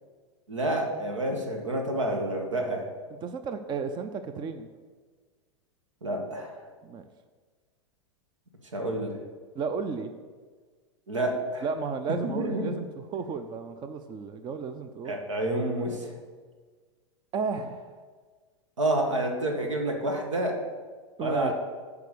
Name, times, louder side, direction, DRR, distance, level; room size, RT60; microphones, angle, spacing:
voice 1, 0.5-2.9 6.0-6.7 8.6-9.2 11.1-11.7 12.2-12.8 15.1-16.2 18.8-20.6 21.2-21.5, right 1 dB, 85° right, 3 dB, 1.8 m, -29 dB
voice 2, 3.2-4.7 6.8-7.0 9.5-10.1 11.6-12.8 13.1-15.2 17.3-17.9 21.2-21.5, right 5 dB, 30° right, 9 dB, 0.6 m, -33 dB
10.5 x 4.8 x 6.7 m, 1.5 s
hypercardioid pair, 95°, 16 cm